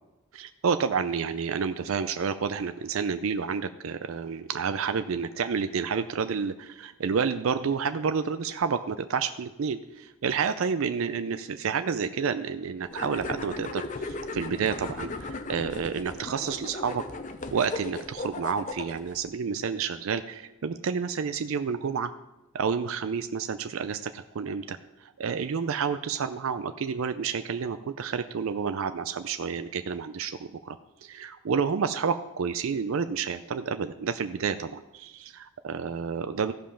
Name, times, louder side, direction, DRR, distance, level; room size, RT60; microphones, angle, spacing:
voice 1, 0.3-17.0 17.5-22.1 22.5-36.5, right 6 dB, 75° right, 10 dB, 0.4 m, -30 dB
sound 1, 12.9-19.2, left 3 dB, 35° left, 0.6 m, -37 dB
14.5 x 5.2 x 5.7 m, 0.99 s
head